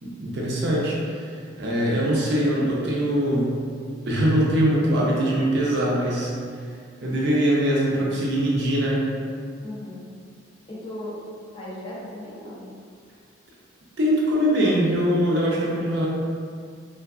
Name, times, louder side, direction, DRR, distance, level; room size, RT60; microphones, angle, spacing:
voice 1, 0.0-1.3 1.6-3.6 4.0-6.3 7.0-9.0 14.0-16.1, equal, 60° right, -5 dB, 0.5 m, -22 dB
voice 2, 9.6-10.0 10.7-12.7, left 1 dB, 25° left, -8 dB, 0.5 m, -37 dB
2.4 x 2.4 x 2.2 m, 2.2 s
head